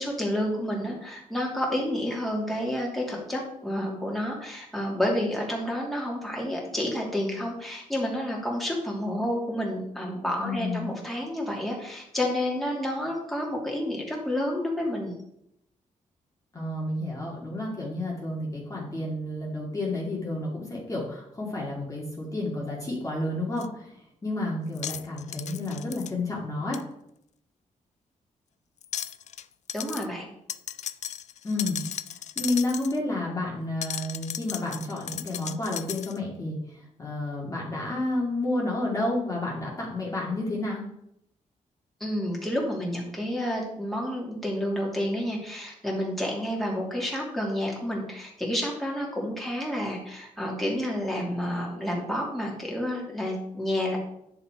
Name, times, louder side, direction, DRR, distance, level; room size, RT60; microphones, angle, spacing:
voice 1, 0.0-15.1 29.7-30.3 42.0-54.0, left 1 dB, ahead, -3 dB, 2.6 m, -30 dB
voice 2, 10.4-10.9 16.5-26.8 31.4-31.8 32.4-40.8, left 2 dB, 25° left, -4 dB, 2.2 m, -30 dB
sound 1, 23.6-23.7 24.7-26.1 26.7-26.8 28.8-29.4 29.7-30.1 30.5-33.0 33.8-36.2, left 10 dB, 60° left, 0.4 m, -36 dB
9.8 x 6.9 x 4.7 m, 0.77 s
wide cardioid pair, 120°, 13 cm